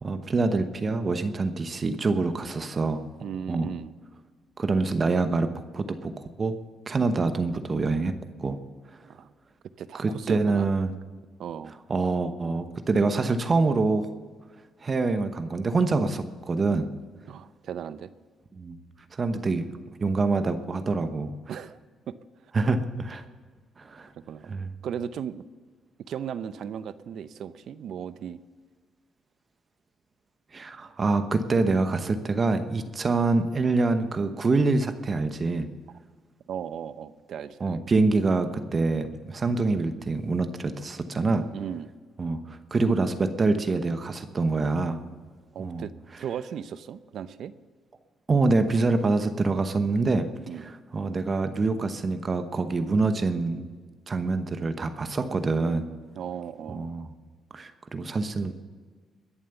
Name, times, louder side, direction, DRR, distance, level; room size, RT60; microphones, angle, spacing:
voice 1, 0.0-3.1 3.5-3.7 4.6-6.6 6.9-8.6 10.0-10.9 11.9-14.1 14.8-16.9 18.5-18.8 19.1-19.7 20.0-21.4 22.5-23.2 23.8-24.1 24.5-24.7 30.5-35.7 37.6-41.5 42.2-45.0 45.6-45.8 48.3-50.3 50.9-53.7 54.1-55.9 56.7-57.1 57.5-58.5, right 3 dB, 35° right, 9 dB, 1.0 m, -25 dB
voice 2, 3.2-3.9 9.1-9.3 9.8-10.7 11.4-11.7 17.3-18.1 21.5-21.8 22.1-22.2 24.3-25.4 26.1-28.4 36.5-37.9 41.5-41.9 45.5-45.9 46.2-47.5 50.5-50.7 56.2-56.9, right 8 dB, 70° right, 15 dB, 0.6 m, -36 dB
21.5 x 7.3 x 7.0 m, 1.5 s
cardioid pair, 90°, 0 cm